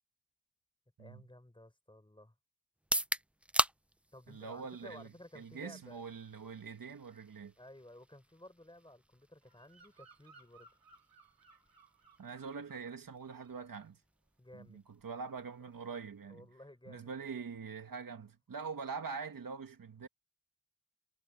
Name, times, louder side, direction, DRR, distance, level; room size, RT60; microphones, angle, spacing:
voice 1, 1.0-2.4 4.1-6.0 7.6-10.7 14.4-14.8 15.6-15.7 16.3-17.5, left 1 dB, 15° left, 5.5 m, -55 dB
sound 1, 2.7-16.6, right 1 dB, 5° right, 0.4 m, -43 dB
voice 2, 4.3-7.5 12.2-14.0 14.5-16.5 16.9-20.1, right 5 dB, 75° right, 2.1 m, -44 dB
Bird vocalization bird call bird song, 9.4-13.0 13.2-13.6, right 3 dB, 90° right, 3.5 m, -63 dB
wide cardioid pair, 70°, 34 cm